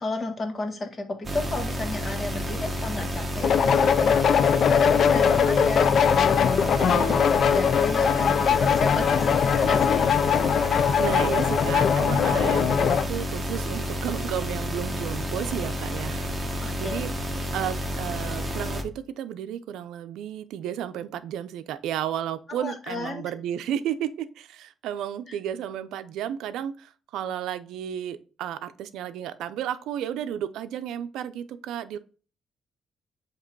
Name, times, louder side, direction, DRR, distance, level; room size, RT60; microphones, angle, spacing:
voice 1, 0.0-4.4 4.7-6.9 7.5-10.1 16.6-17.0 22.5-23.2 25.3-25.4, left 2 dB, 35° left, 4 dB, 1.6 m, -33 dB
sound 1, 1.2-18.8, equal, 20° right, 1.2 m, -30 dB
sound 2, 3.4-13.1, left 7 dB, 60° left, 0.4 m, -21 dB
voice 2, 6.8-7.3 10.6-17.1 17.5-32.0, right 10 dB, 85° right, 11 dB, 0.5 m, -33 dB
7.3 x 3.0 x 4.6 m, 0.38 s
cardioid pair, 90°, 0 cm